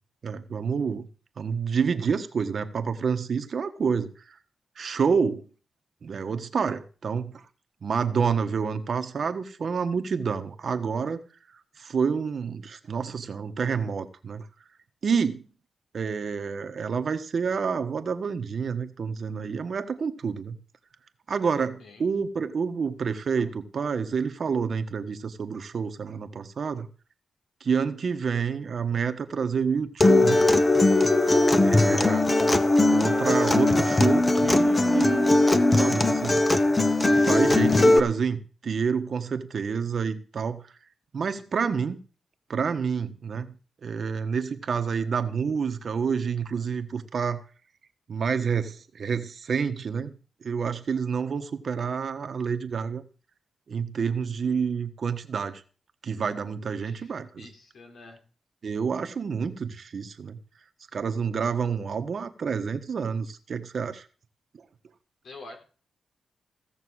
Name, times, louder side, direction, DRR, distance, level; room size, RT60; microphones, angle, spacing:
voice 1, 0.2-1.1 1.4-4.1 4.8-5.4 6.0-7.4 7.8-11.2 11.8-14.4 15.0-15.5 15.9-20.6 21.3-26.9 27.6-30.4 31.6-32.3 32.9-35.3 35.7-36.4 37.1-40.6 41.1-42.0 42.5-43.5 43.8-47.4 48.1-50.1 50.4-53.0 53.7-55.6 56.0-57.5 58.6-60.4 60.9-64.0, right 6 dB, 60° right, 1.4 m, -28 dB
Acoustic guitar, 30.0-38.0, left 2 dB, 25° left, 1.1 m, -20 dB
voice 2, 56.9-58.2 65.2-65.6, left 2 dB, 80° left, 4.0 m, -47 dB
16.5 x 6.6 x 6.4 m
cardioid pair, 80°, 0 cm